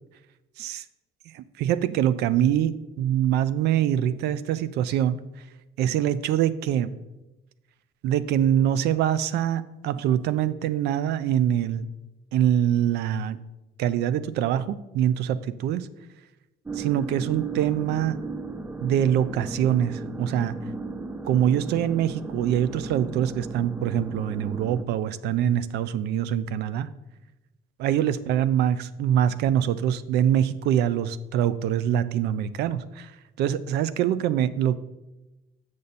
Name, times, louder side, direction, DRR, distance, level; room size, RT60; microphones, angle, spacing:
voice 1, 1.3-5.2 5.8-6.9 8.0-11.9 12.3-13.4 13.8-15.9 16.7-18.2 18.8-20.6 21.2-26.9 27.8-33.1 33.4-34.8, right 10 dB, 75° right, 15 dB, 0.5 m, -24 dB
sound 1, 16.7-24.8, right 3 dB, 10° right, 0.4 m, -35 dB
7.0 x 6.4 x 4.1 m, 1.0 s
cardioid pair, 110°, 17 cm